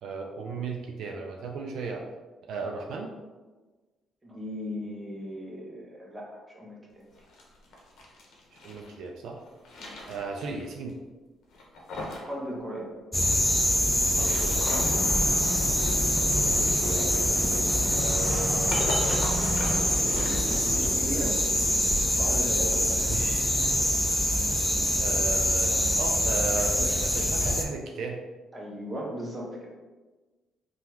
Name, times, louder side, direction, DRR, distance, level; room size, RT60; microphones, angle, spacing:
voice 1, 0.0-2.1 2.5-3.1 8.5-9.4 10.1-11.0 14.1-15.4 16.1-17.2 17.9-20.3 23.1-23.7 25.0-28.2, right 4 dB, 75° right, 1 dB, 0.3 m, -36 dB
voice 2, 4.2-7.1 9.8-9.9 12.2-12.9 20.5-21.4 22.2-23.1 28.5-29.7, equal, 25° right, -2 dB, 0.8 m, -37 dB
sound 1, 7.1-8.9 9.4-10.6 10.9-11.0 11.5-12.3 12.6-12.7 13.9-15.0 16.9-21.0, left 2 dB, 80° left, 0.7 m, -38 dB
sound 2, 13.1-27.6, equal, 5° left, 0.4 m, -25 dB
sound 3, 14.7-20.9, right 1 dB, 45° right, 1.3 m, -34 dB
3.4 x 2.2 x 2.9 m, 1.3 s
cardioid pair, 90°, 0 cm